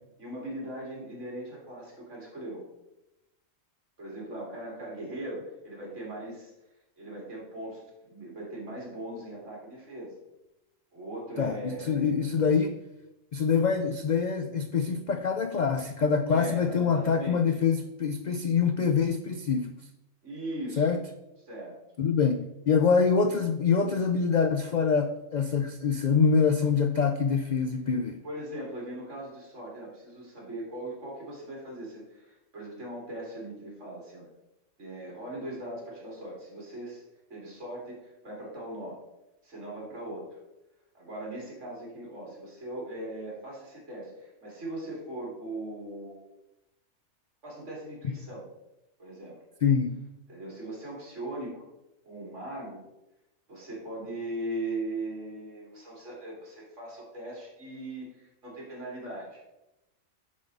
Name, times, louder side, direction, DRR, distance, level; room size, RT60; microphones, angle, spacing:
voice 1, 0.2-2.6 4.0-6.5 7.0-10.1 10.9-12.5 16.3-17.6 20.2-20.9 21.5-21.8 22.9-23.1 28.2-34.3 34.8-37.0 37.3-39.0 39.4-40.3 40.9-46.3 47.4-48.5 49.0-49.4 50.3-51.7 52.0-52.8 53.5-59.4, right 1 dB, 60° right, -3 dB, 3.1 m, -39 dB
voice 2, 11.4-12.8 13.3-19.7 20.8-21.0 22.0-28.2 49.6-50.0, left 5 dB, 80° left, 7 dB, 0.4 m, -25 dB
10.5 x 5.2 x 4.0 m, 0.93 s
omnidirectional pair, 1.4 m